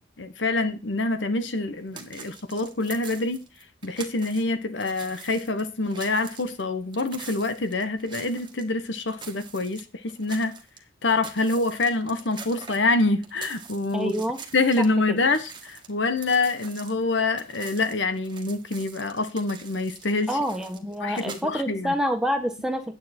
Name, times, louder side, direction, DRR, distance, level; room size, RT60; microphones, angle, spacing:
voice 1, 0.0-3.5 3.8-10.6 11.0-14.2 14.5-20.4 21.0-21.9, left 3 dB, 85° left, 1.1 m, -26 dB
sound 1, 1.9-4.4 4.8-8.7 9.1-10.8 11.1-14.9 15.2-21.4, right 6 dB, 25° right, 1.4 m, -44 dB
voice 2, 13.9-14.4 15.1-15.2 20.3-22.9, equal, 5° right, 1.3 m, -27 dB
9.3 x 8.5 x 4.4 m
head